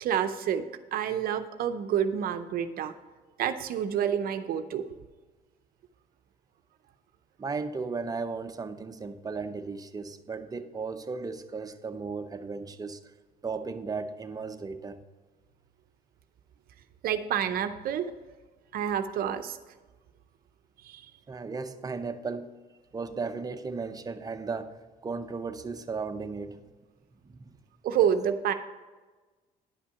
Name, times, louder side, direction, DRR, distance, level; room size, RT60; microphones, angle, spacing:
voice 1, 0.0-2.9 3.4-4.8 17.0-18.1 18.7-19.6 20.8-21.1 27.8-28.5, right 9 dB, 60° right, 0.6 m, -28 dB
voice 2, 7.4-13.0 13.4-15.0 21.3-22.5 22.9-24.8 25.0-26.6 27.2-27.5, right 4 dB, 20° right, 0.6 m, -35 dB
10.5 x 5.7 x 5.7 m
cardioid pair, 110°, 17 cm